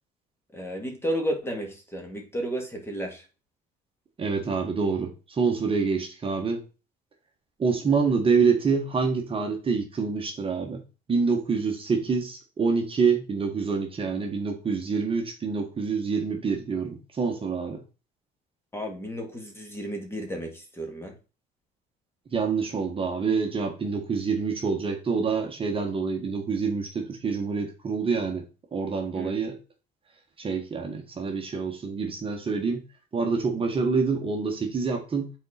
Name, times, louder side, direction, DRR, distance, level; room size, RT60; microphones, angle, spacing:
voice 1, 0.5-3.2 18.7-21.1 29.1-29.3, equal, 15° left, 2 dB, 1.8 m, -32 dB
voice 2, 4.2-6.7 7.6-10.8 11.1-17.8 22.3-28.4 28.7-29.6 30.4-32.8 33.1-35.3, right 5 dB, 30° right, 2 dB, 1.4 m, -26 dB
7.4 x 4.2 x 4.2 m, 0.32 s
cardioid pair, 115°, 19 cm